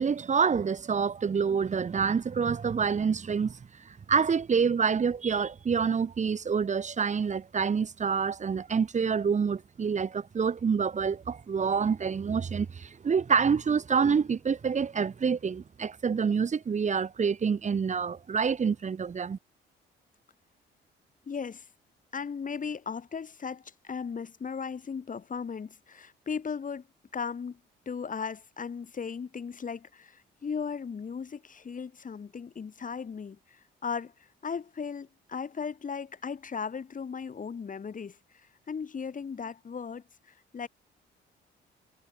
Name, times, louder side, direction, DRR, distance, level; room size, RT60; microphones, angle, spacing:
voice 1, 0.0-3.6 3.9-19.4, right 6 dB, 35° right, 1.4 m, -27 dB
voice 2, 21.3-21.6 22.1-26.8 27.1-27.6 27.9-34.1 34.4-40.7, left 6 dB, 40° left, 6.4 m, -37 dB
cardioid pair, 90°, 20 cm